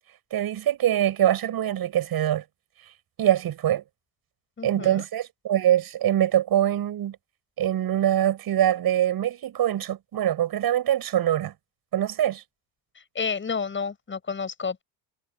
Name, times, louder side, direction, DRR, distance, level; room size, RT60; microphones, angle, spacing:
voice 1, 0.3-2.4 3.2-3.8 4.6-7.2 7.6-11.5 11.9-12.4, right 11 dB, 50° right, 6.9 m, -23 dB
voice 2, 4.6-5.0 13.1-14.8, left 5 dB, 25° left, 7.4 m, -30 dB
cardioid pair, 120°, 47 cm